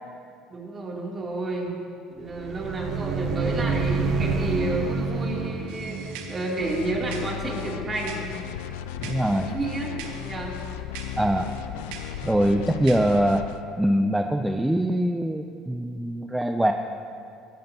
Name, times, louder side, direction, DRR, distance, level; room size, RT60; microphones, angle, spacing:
voice 1, 0.5-1.7 2.1-8.3 9.4-10.6, right 2 dB, 30° right, -3 dB, 3.2 m, -31 dB
sound 1, 2.3-6.9, right 4 dB, 55° right, 1.0 m, -28 dB
sound 2, 5.7-13.4, right 7 dB, 80° right, 1.2 m, -45 dB
sound 3, 6.6-13.6, left 11 dB, 85° left, 0.4 m, -35 dB
voice 2, 9.0-9.5 11.2-11.5 12.2-13.5 13.8-16.7, right 1 dB, 5° right, 5 dB, 0.6 m, -23 dB
17.5 x 14.0 x 3.0 m, 2.6 s
supercardioid pair, 85°, 0 cm